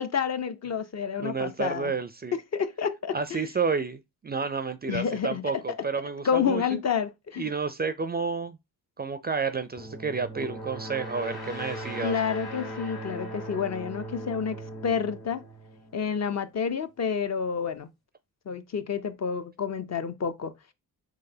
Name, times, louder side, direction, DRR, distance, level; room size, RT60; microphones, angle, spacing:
voice 1, 0.0-1.9 2.3-3.4 4.9-5.8 6.2-7.5 12.0-15.4 15.9-17.9 18.5-20.7, left 7 dB, 45° left, 0.5 m, -29 dB
voice 2, 1.2-2.3 3.1-6.8 7.4-8.6 9.0-12.2, right 5 dB, 25° right, 0.4 m, -30 dB
sound 1, 9.8-16.4, equal, 75° left, 1.9 m, -39 dB
3.9 x 3.0 x 2.7 m
cardioid pair, 55°, 38 cm